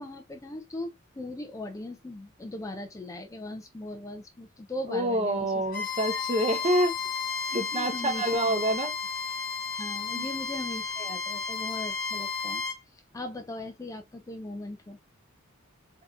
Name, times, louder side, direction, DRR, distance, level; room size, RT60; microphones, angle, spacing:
voice 1, 0.0-5.5 6.1-6.2 7.5-8.9 9.8-12.6 12.9-15.0, left 1 dB, 15° left, 0.4 m, -39 dB
voice 2, 4.9-6.9 7.5-8.9 10.1-10.2, right 1 dB, 30° right, 0.8 m, -27 dB
Bowed string instrument, 5.7-12.8, left 5 dB, 45° left, 1.3 m, -33 dB
3.5 x 2.8 x 2.3 m
head